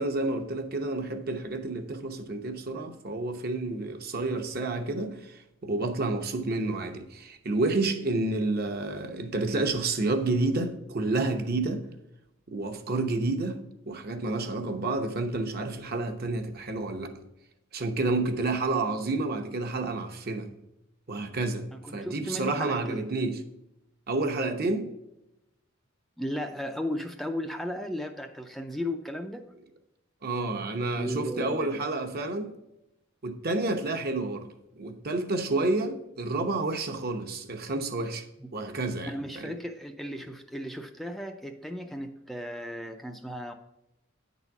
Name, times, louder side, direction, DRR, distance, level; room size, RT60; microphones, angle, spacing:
voice 1, 0.0-11.8 12.5-13.6 13.9-17.1 17.7-20.5 21.1-23.4 24.1-24.9 30.2-32.5 33.2-34.5 34.8-38.2 38.5-39.5, right 2 dB, 50° right, 0.9 m, -30 dB
voice 2, 21.7-23.1 26.2-29.5 31.0-31.7 38.4-38.5 39.0-43.5, equal, ahead, 0.4 m, -35 dB
9.6 x 4.1 x 5.9 m
head